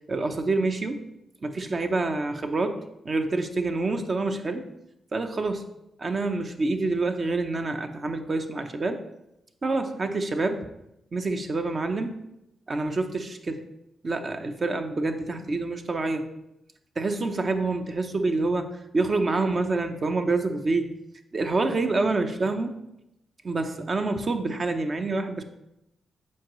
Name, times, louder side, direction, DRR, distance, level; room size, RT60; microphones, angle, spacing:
voice 1, 0.1-1.0 1.4-4.7 5.1-5.6 6.0-9.0 9.6-10.7 11.1-12.2 12.7-13.6 14.0-16.3 17.0-20.9 21.3-22.7 23.4-25.4, right 3 dB, 45° right, 6 dB, 0.7 m, -27 dB
7.4 x 4.6 x 3.0 m, 0.86 s
cardioid pair, 60°, 0 cm